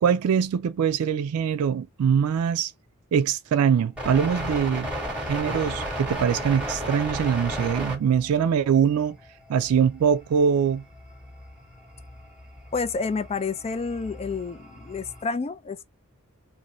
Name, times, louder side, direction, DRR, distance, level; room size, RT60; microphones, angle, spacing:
voice 1, 0.0-2.7 3.1-4.9 5.2-9.2 9.5-10.8, right 7 dB, 85° right, 0.3 m, -23 dB
sound 1, 4.0-15.2, equal, 5° right, 1.8 m, -35 dB
voice 2, 12.7-15.8, left 4 dB, 30° left, 0.3 m, -29 dB
2.6 x 2.6 x 3.0 m
head